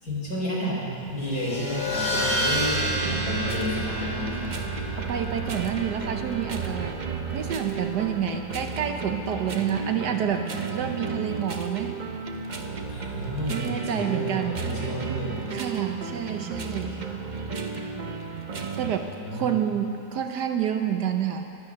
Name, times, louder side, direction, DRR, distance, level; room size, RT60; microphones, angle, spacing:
voice 1, 0.0-4.6 12.9-15.4 16.8-17.0 19.1-19.5, equal, 55° left, -5 dB, 4.7 m, -31 dB
sound 1, 1.1-8.2, right 1 dB, 25° left, 3.2 m, -31 dB
sound 2, 2.9-18.9, right 5 dB, 40° right, 0.6 m, -33 dB
voice 2, 5.0-7.0 7.3-12.0 13.5-14.7 15.5-17.0 18.8-21.5, right 8 dB, 65° right, 5 dB, 1.3 m, -28 dB
19.5 x 11.5 x 6.4 m, 2.8 s
omnidirectional pair, 2.0 m